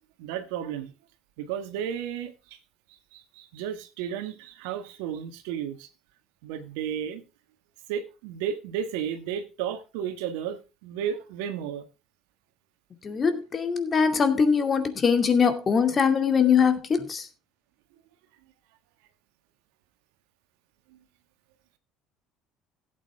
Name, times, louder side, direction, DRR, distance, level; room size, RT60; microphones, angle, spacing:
voice 1, 0.2-0.9 1.4-2.6 3.1-5.9 6.4-7.2 7.9-11.8 20.9-21.0, right 9 dB, 75° right, 1.4 m, -33 dB
voice 2, 13.0-17.3, left 6 dB, 35° left, 2.3 m, -22 dB
16.5 x 8.4 x 3.5 m
hypercardioid pair, 65°, 0 cm